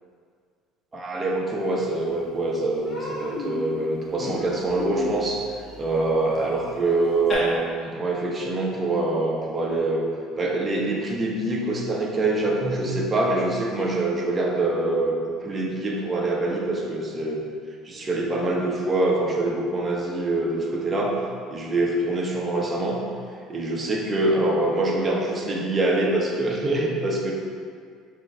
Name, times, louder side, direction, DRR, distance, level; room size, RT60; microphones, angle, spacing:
voice 1, 0.9-5.5 5.8-10.1 10.4-15.2 15.4-17.4 17.8-21.2 21.5-23.0 23.5-27.3, right 2 dB, 30° right, -1 dB, 0.8 m, -25 dB
Human voice, 1.8-1.9 2.3-2.5 2.8-7.3, left 2 dB, 40° left, 1.3 m, -35 dB
6.0 x 3.7 x 2.2 m, 2.1 s
hypercardioid pair, 60°, 0 cm